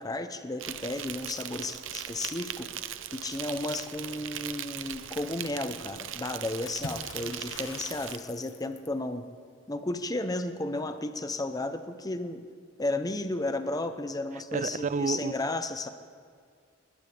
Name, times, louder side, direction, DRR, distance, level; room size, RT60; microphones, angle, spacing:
voice 1, 0.0-2.7 3.1-9.2 9.7-12.5 12.8-15.9, left 2 dB, 20° left, 9 dB, 0.7 m, -33 dB
Insect, 0.6-8.2, right 10 dB, 90° right, 0.7 m, -39 dB
Water / Splash splatter, 6.7-9.0, left 3 dB, 75° left, 1.1 m, -43 dB
voice 2, 14.5-15.5, right 4 dB, 40° right, 17 dB, 0.4 m, -30 dB
21.5 x 20.0 x 3.4 m, 2.1 s
head